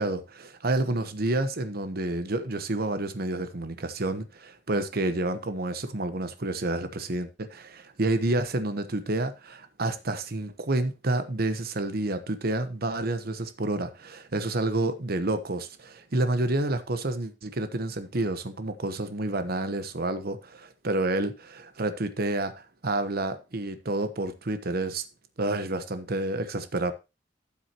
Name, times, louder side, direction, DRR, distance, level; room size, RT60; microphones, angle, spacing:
voice 1, 0.0-25.0 25.4-26.9, right 2 dB, 55° right, 1.1 m, -29 dB
12.5 x 7.3 x 3.0 m
head